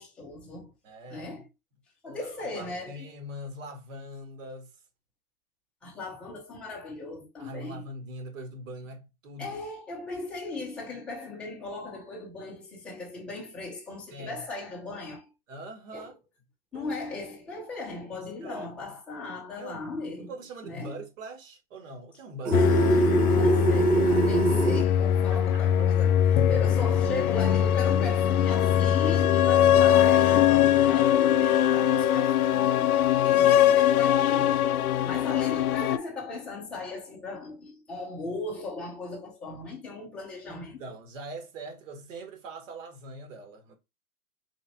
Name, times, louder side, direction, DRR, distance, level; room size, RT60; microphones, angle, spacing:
voice 1, 0.0-0.7 1.1-1.5 2.0-3.1 5.8-7.9 9.4-15.3 15.9-16.1 16.7-20.3 20.6-21.0 23.4-32.9 33.2-34.6 35.0-40.8, left 2 dB, ahead, 0.5 m, -38 dB
voice 2, 0.8-1.3 2.1-2.3 2.6-4.7 7.4-9.6 14.1-14.4 15.5-16.1 16.7-16.9 18.1-18.9 19.6-19.8 20.3-23.5 24.1-24.2 25.3-25.6 26.5-26.6 35.0-35.2 40.5-43.8, right 1 dB, 55° right, 1.9 m, -42 dB
sound 1, 22.4-24.8, right 4 dB, 85° right, 1.5 m, -24 dB
sound 2, 22.5-36.0, left 10 dB, 70° left, 0.5 m, -22 dB
4.0 x 3.1 x 2.7 m
hypercardioid pair, 155°, 45 cm